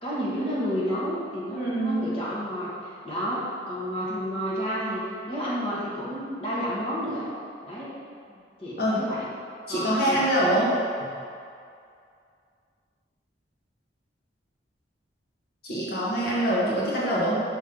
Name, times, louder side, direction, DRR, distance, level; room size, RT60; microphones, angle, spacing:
voice 1, 0.0-7.3 7.6-7.9 8.3-9.3 9.7-10.3, equal, 35° left, -8 dB, 1.4 m, -31 dB
voice 2, 1.5-2.0 8.8-9.1 9.7-10.7 15.6-17.4, right 1 dB, 55° left, -7 dB, 1.4 m, -24 dB
5.4 x 5.2 x 5.4 m, 2.4 s
head